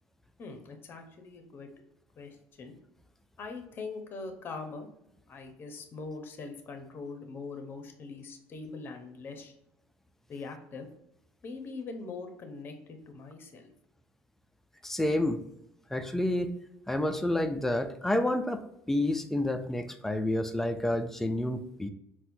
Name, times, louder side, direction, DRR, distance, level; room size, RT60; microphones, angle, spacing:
voice 1, 0.4-1.7 2.2-2.7 3.4-4.9 5.3-9.5 10.3-10.9 11.4-13.7, left 4 dB, 40° left, 6 dB, 0.7 m, -42 dB
voice 2, 14.8-15.4 15.9-16.5 16.9-18.6 18.9-21.9, left 1 dB, 5° left, 7 dB, 0.3 m, -29 dB
4.1 x 2.1 x 2.6 m, 0.80 s
cardioid pair, 110°, 6 cm